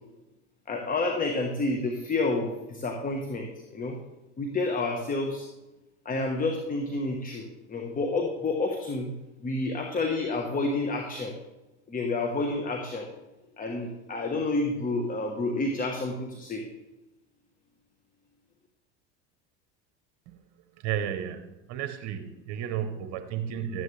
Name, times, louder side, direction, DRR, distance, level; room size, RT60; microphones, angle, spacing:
voice 1, 0.7-4.0 4.4-5.5 6.0-9.1 9.4-11.4 11.9-13.1 13.6-16.7, left 2 dB, 25° left, 3 dB, 1.2 m, -29 dB
voice 2, 20.8-21.4 21.7-23.8, right 9 dB, 60° right, 8 dB, 0.9 m, -32 dB
12.0 x 9.3 x 3.3 m, 1.0 s
supercardioid pair, 95°, 32 cm